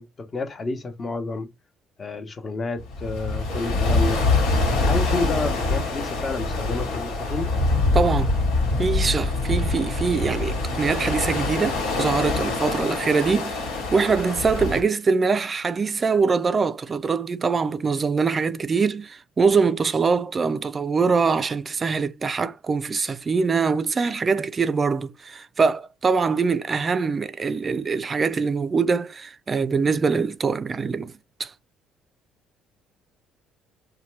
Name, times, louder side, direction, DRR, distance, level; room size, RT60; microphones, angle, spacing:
voice 1, 0.0-1.5 2.0-4.2 4.6-7.5, left 3 dB, 35° left, 0.9 m, -30 dB
sound 1, 2.8-14.8, left 3 dB, 90° left, 1.4 m, -24 dB
voice 2, 7.9-8.4 8.8-31.1 31.4-31.5, right 5 dB, 35° right, 0.4 m, -23 dB
2.8 x 2.2 x 3.2 m
supercardioid pair, 70°, 0 cm